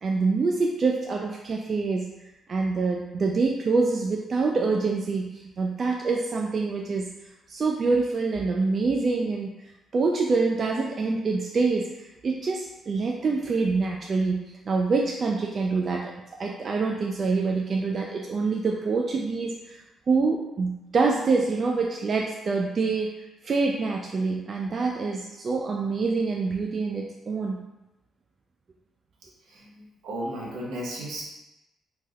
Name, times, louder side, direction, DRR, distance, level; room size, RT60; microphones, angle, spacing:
voice 1, 0.0-2.1 2.5-7.1 7.5-9.5 9.9-11.9 12.2-16.1 16.4-19.8 20.1-27.6, right 4 dB, 45° right, 0 dB, 0.3 m, -26 dB
voice 2, 29.5-31.2, right 1 dB, 80° right, -3 dB, 0.9 m, -35 dB
3.3 x 2.1 x 3.4 m, 0.97 s
cardioid pair, 90°, 0 cm